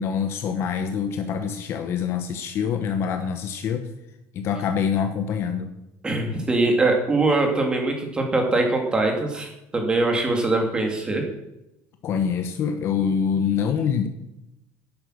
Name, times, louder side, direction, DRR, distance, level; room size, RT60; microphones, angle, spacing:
voice 1, 0.0-3.9 4.3-5.7 12.0-14.1, left 7 dB, 35° left, 7 dB, 1.1 m, -25 dB
voice 2, 6.0-11.2, right 2 dB, 10° right, 3 dB, 2.5 m, -22 dB
11.5 x 11.0 x 6.4 m, 0.90 s
cardioid pair, 180°, 7 cm